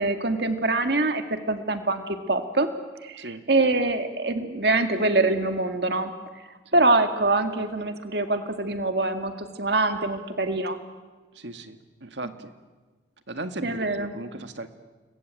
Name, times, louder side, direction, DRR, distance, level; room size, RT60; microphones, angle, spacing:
voice 1, 0.0-2.7 3.0-6.1 6.7-10.8 13.6-14.1, right 2 dB, 60° right, 7 dB, 2.0 m, -24 dB
voice 2, 11.4-12.5 13.3-14.7, right 2 dB, 80° right, 8 dB, 1.9 m, -37 dB
29.5 x 22.0 x 9.1 m, 1.3 s
head